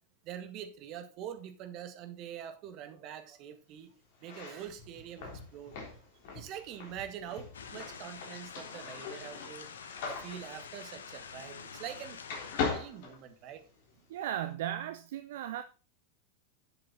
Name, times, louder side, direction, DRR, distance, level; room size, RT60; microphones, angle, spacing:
voice 1, 0.2-3.9 4.2-5.8 6.3-9.7 10.2-12.2 12.5-13.7, right 9 dB, 40° right, 1.8 m, -44 dB
sound 1, 4.1-12.0 12.2-13.9, left 5 dB, 50° left, 3.7 m, -40 dB
sound 2, 7.5-12.7, left 6 dB, 65° left, 1.2 m, -47 dB
voice 2, 14.1-15.6, right 11 dB, 55° right, 0.7 m, -36 dB
11.0 x 7.7 x 4.0 m
figure-of-eight pair, 90°, 0 cm